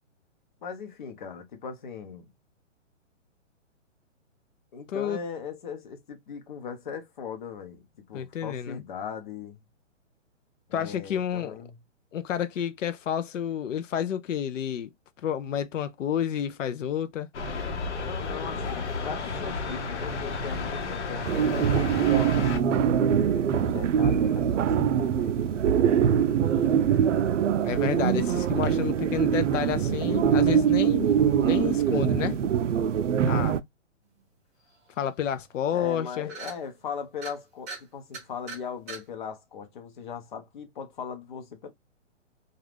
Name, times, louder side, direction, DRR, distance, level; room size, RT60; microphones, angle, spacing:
voice 1, 0.6-2.3 4.7-9.6 10.7-11.8 18.0-22.9 23.2-25.6 33.2-33.6 35.7-41.7, left 6 dB, 40° left, 0.7 m, -39 dB
voice 2, 4.9-5.2 8.1-8.8 10.7-11.5 12.1-14.9 15.2-17.3 27.6-31.1 31.4-32.4 33.3-33.6 35.0-36.3, left 9 dB, 85° left, 0.5 m, -30 dB
sound 1, 17.3-22.6, left 4 dB, 65° left, 0.9 m, -32 dB
sound 2, 21.2-33.6, right 8 dB, 75° right, 0.5 m, -23 dB
sound 3, 35.0-35.1 35.4-35.5 35.8-36.0 36.3-36.6 37.1-37.3 37.7-37.8 38.1-38.6 38.9-39.0, right 5 dB, 15° right, 0.6 m, -39 dB
2.5 x 2.3 x 3.3 m
hypercardioid pair, 165°, 37 cm